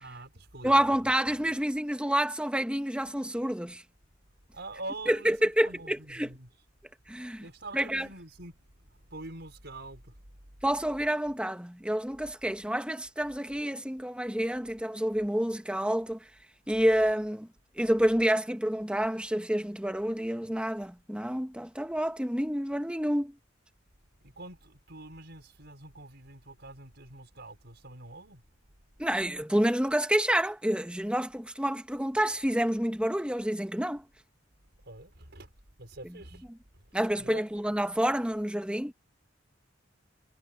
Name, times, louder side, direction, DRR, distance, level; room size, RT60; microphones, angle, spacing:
voice 1, 0.0-1.0 1.3-1.5 4.5-6.5 7.4-8.5 8.9-10.1 24.2-28.4 34.8-35.5 35.8-36.4 37.2-37.5, right 2 dB, 60° right, 5.7 m, -45 dB
voice 2, 0.6-3.8 5.1-6.3 7.1-7.4 7.7-8.1 10.6-16.2 16.7-17.5 17.8-23.3 29.0-34.0 36.9-38.9, right 1 dB, 5° right, 1.5 m, -28 dB
head